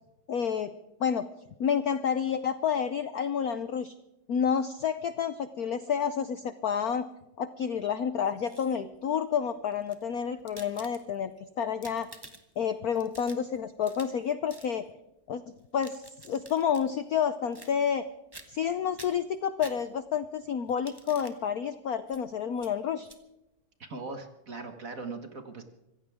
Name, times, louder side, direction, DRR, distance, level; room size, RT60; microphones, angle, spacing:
voice 1, 0.3-0.7 1.0-1.3 1.6-3.9 4.3-7.1 7.4-11.3 11.6-12.1 12.6-14.9 15.3-15.4 15.7-18.0 18.5-23.1, left 7 dB, 70° left, 12 dB, 0.8 m, -29 dB
sound 1, 8.3-9.0 9.7-11.3 11.7-12.6 12.9-14.2 14.5-14.7 15.6-16.9 17.5-18.0 18.3-18.7 19.0-20.2 20.7-21.4 22.1-22.2 22.6-22.7 23.0-23.2, right 2 dB, 15° right, 1.1 m, -50 dB
voice 2, 23.8-25.6, right 3 dB, 40° right, 6 dB, 1.7 m, -40 dB
25.0 x 16.0 x 3.6 m, 0.93 s
omnidirectional pair, 2.4 m